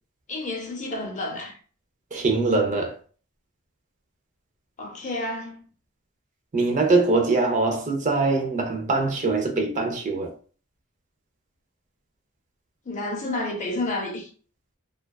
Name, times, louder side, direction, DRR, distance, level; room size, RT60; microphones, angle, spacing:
voice 1, 0.3-1.6 4.8-5.6 12.9-14.3, left 2 dB, 35° left, 0.5 m, -30 dB
voice 2, 2.1-3.0 6.5-10.3, right 3 dB, 35° right, 0.5 m, -23 dB
2.5 x 2.2 x 2.2 m
head